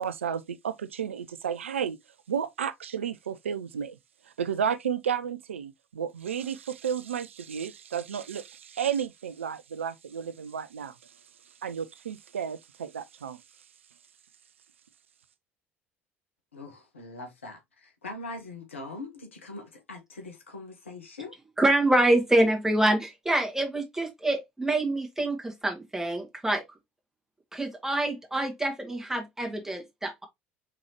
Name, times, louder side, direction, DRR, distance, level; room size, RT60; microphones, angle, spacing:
voice 1, 0.0-2.0 2.3-4.0 4.4-11.1 11.6-13.4, right 8 dB, 80° right, 0.4 m, -32 dB
voice 2, 16.5-21.3, left 2 dB, 80° left, 1.3 m, -42 dB
voice 3, 21.6-26.6 27.5-30.2, right 1 dB, 5° right, 1.7 m, -26 dB
4.6 x 3.7 x 3.0 m
figure-of-eight pair, 65°, 7 cm